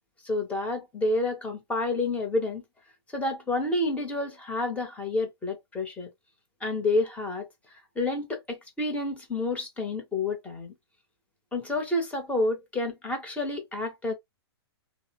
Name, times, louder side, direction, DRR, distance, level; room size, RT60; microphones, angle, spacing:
voice 1, 0.2-2.6 3.1-6.1 6.6-7.5 8.0-10.7 11.5-14.1, left 2 dB, 10° left, 0.9 m, -29 dB
2.7 x 2.0 x 2.8 m
hypercardioid pair, 135°, 14 cm